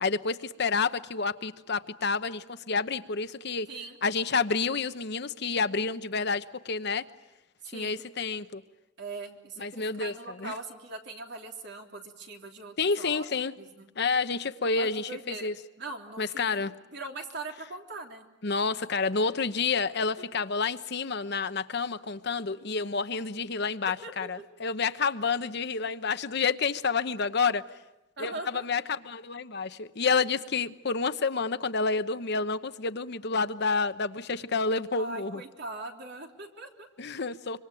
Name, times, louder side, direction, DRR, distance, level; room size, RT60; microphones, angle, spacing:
voice 1, 0.0-3.7 4.0-7.0 7.7-8.6 9.6-10.5 12.8-13.5 14.0-15.5 16.2-16.7 18.4-27.6 28.2-35.4 37.0-37.6, left 4 dB, 55° left, 11 dB, 1.0 m, -29 dB
voice 2, 7.6-8.0 9.0-13.2 13.6-13.9 14.8-15.5 15.8-18.3 23.8-24.3 28.2-28.6 34.9-36.9, right 2 dB, 60° right, 2 dB, 3.4 m, -41 dB
25.5 x 25.5 x 9.1 m, 0.97 s
head